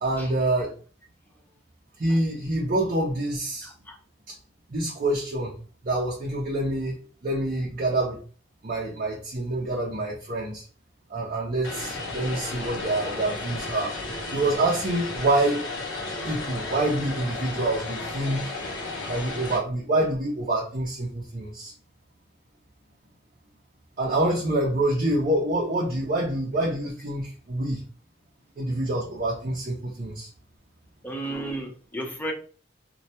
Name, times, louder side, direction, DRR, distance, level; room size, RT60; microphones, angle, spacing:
voice 1, 0.0-0.7 2.0-3.7 4.7-5.5 5.8-7.0 7.2-8.2 8.6-10.6 11.1-13.9 14.3-15.6 16.3-18.5 19.1-21.7 24.0-27.8 28.6-30.3, right 1 dB, 45° right, 0.6 m, -26 dB
voice 2, 3.6-4.0 31.0-32.3, right 1 dB, 10° left, 0.5 m, -34 dB
Vehicle, 11.6-19.6, left 2 dB, 90° left, 0.7 m, -34 dB
2.2 x 2.1 x 2.7 m
head